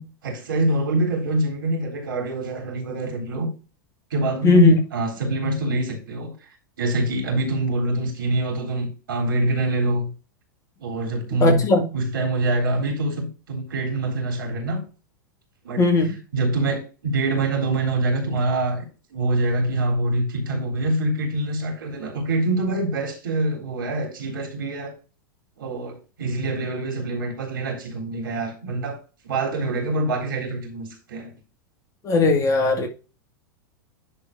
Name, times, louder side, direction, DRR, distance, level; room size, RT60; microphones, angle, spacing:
voice 1, 0.0-3.5 4.1-10.1 10.8-11.6 11.9-14.8 15.6-15.8 16.3-18.9 19.1-24.9 25.6-29.0 29.2-31.3, right 2 dB, 75° right, 3.7 m, -25 dB
voice 2, 4.4-4.8 11.4-11.8 15.8-16.1 32.0-32.9, left 3 dB, 30° left, 2.1 m, -17 dB
10.5 x 4.0 x 4.1 m
hypercardioid pair, 100°, 11 cm